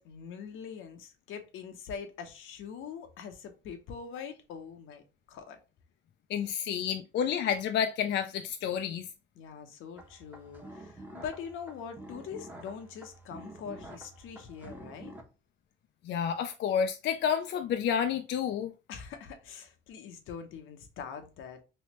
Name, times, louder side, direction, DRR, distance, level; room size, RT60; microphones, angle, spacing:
voice 1, 0.0-5.6 6.7-6.9 9.4-15.1 18.9-21.6, left 7 dB, 85° left, 0.8 m, -43 dB
voice 2, 6.3-9.1 16.0-18.7, left 8 dB, 60° left, 0.4 m, -30 dB
sound 1, 10.0-15.2, right 1 dB, 10° right, 0.9 m, -48 dB
3.2 x 3.1 x 3.0 m
cardioid pair, 90°, 20 cm